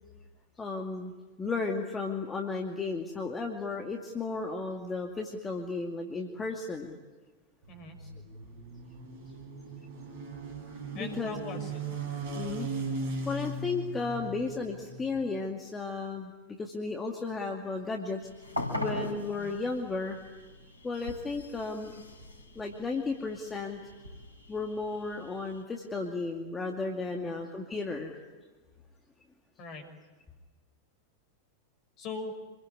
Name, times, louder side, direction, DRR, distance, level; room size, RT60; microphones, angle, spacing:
voice 1, 0.6-1.1 1.4-7.0 8.0-8.1 10.9-11.7 12.3-12.7 13.2-16.3 16.6-18.2 18.8-20.2 20.8-22.0 22.6-23.8 24.5-28.2, left 3 dB, 15° left, 1 dB, 2.4 m, -34 dB
sound 1, 7.6-15.3, right 3 dB, 55° right, 5.8 m, -38 dB
voice 2, 7.7-8.0 10.9-11.8 19.3-19.5 27.1-27.3 29.6-29.9 32.0-32.4, left 3 dB, 40° left, 6 dB, 5.9 m, -41 dB
sound 2, 18.2-25.6, left 1 dB, 90° right, 4.5 m, -41 dB
27.5 x 22.0 x 9.7 m, 1.3 s
figure-of-eight pair, 90°, 0 cm